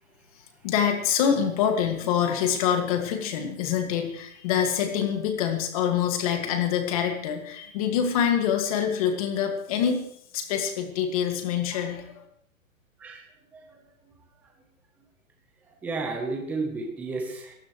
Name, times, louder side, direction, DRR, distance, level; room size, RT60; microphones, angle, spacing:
voice 1, 0.6-10.0 10.3-12.2, left 8 dB, 25° left, 5 dB, 2.0 m, -25 dB
voice 2, 13.0-13.8 15.8-17.5, right 3 dB, 5° right, 2 dB, 0.9 m, -32 dB
24.0 x 15.5 x 3.1 m, 0.70 s
hypercardioid pair, 170°, 41 cm